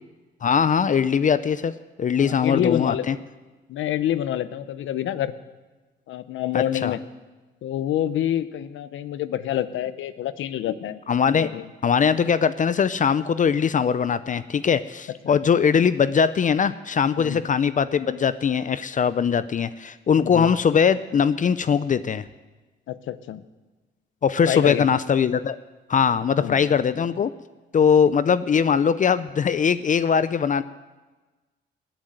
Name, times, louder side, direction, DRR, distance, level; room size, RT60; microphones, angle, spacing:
voice 1, 0.4-1.7 2.0-3.2 6.5-6.9 11.1-11.5 11.8-22.2 24.2-25.6 25.9-27.3 27.7-30.6, left 7 dB, 40° left, 14 dB, 0.6 m, -21 dB
voice 2, 2.1-3.1 3.7-5.3 6.1-7.0 7.6-11.0 11.3-11.7 15.2-15.4 17.2-17.4 20.2-20.5 22.9-23.4 24.5-24.9 26.4-26.6, left 11 dB, 80° left, 14 dB, 0.9 m, -27 dB
19.5 x 9.0 x 7.9 m, 1.2 s
cardioid pair, 90°, 20 cm